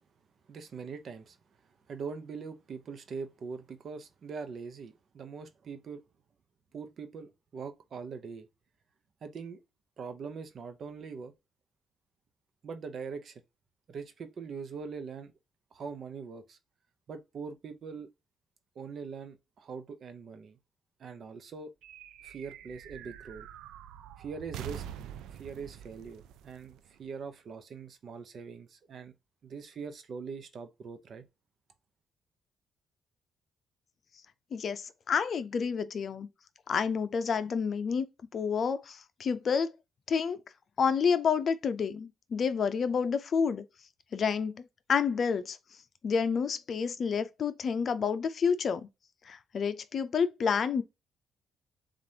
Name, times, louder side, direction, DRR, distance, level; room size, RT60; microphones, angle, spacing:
voice 1, 0.5-1.4 1.9-6.0 6.7-8.5 9.2-9.6 10.0-11.3 12.6-13.4 13.9-15.3 15.7-16.6 17.1-18.1 18.8-20.6 21.0-21.7 22.2-23.5 24.2-24.8 25.3-29.1 29.4-31.3, right 5 dB, 55° right, 0.7 m, -42 dB
sound 1, 21.8-27.5, right 10 dB, 85° right, 0.3 m, -46 dB
voice 2, 34.5-36.3 36.7-38.1 38.3-39.7 40.1-40.4 40.8-43.6 44.1-44.6 44.9-45.6 46.0-48.9 49.3-50.8, left 6 dB, 50° left, 0.5 m, -29 dB
7.3 x 2.5 x 2.8 m
cardioid pair, 90°, 0 cm